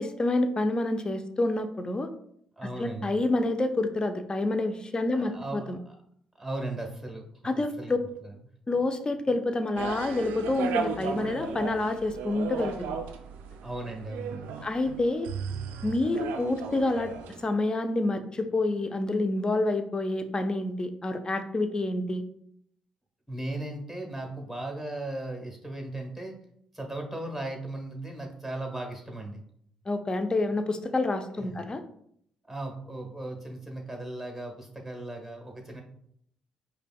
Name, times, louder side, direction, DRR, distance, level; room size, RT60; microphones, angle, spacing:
voice 1, 0.0-2.1 2.8-5.8 7.4-8.0 8.7-12.7 14.6-15.3 15.8-17.1 17.4-22.2 29.9-31.8, left 2 dB, 30° left, 8 dB, 0.5 m, -28 dB
voice 2, 2.6-3.2 5.1-6.0 6.4-8.0 8.2-8.3 13.6-14.5 23.3-26.4 26.7-29.4 31.4-31.6 32.5-35.8, right 2 dB, ahead, 2 dB, 1.2 m, -37 dB
sound 1, 9.8-17.4, right 6 dB, 70° right, 0.3 m, -36 dB
5.0 x 2.2 x 2.3 m, 0.68 s
hypercardioid pair, 45°, 3 cm